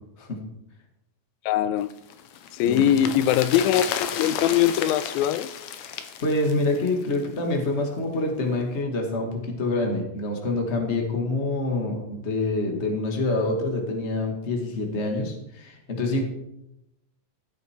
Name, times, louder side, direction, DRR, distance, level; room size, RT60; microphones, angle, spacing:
voice 1, 1.5-1.9 2.5-5.5, left 11 dB, 85° left, 2.4 m, -22 dB
sound 1, 1.9-7.3 7.6-7.7, left 8 dB, 70° left, 1.8 m, -33 dB
voice 2, 2.6-3.0 5.8-16.2, left 2 dB, 25° left, 1.7 m, -26 dB
16.5 x 8.1 x 4.6 m
omnidirectional pair, 4.1 m